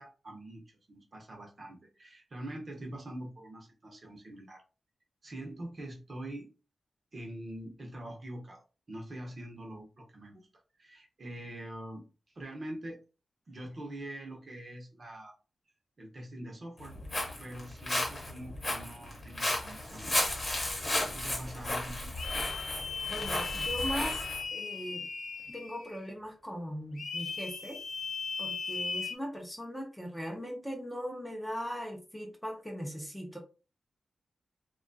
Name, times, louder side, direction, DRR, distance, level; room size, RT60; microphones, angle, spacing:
voice 1, 0.0-4.6 5.2-6.5 7.1-8.6 8.9-10.5 10.7-12.0 12.3-13.0 13.5-15.3 16.0-17.0 17.4-20.5 21.0-22.1, right 1 dB, 40° right, 0 dB, 0.8 m, -44 dB
Walk footsteps, 16.8-24.4, left 1 dB, 30° left, 1.1 m, -34 dB
sound 1, 22.2-26.0 27.0-29.2, left 5 dB, 65° left, 0.5 m, -37 dB
voice 2, 23.1-25.1 25.5-27.8 28.4-33.4, equal, 5° left, 0 dB, 0.6 m, -39 dB
2.8 x 2.3 x 2.6 m, 0.33 s
wide cardioid pair, 125°, 0 cm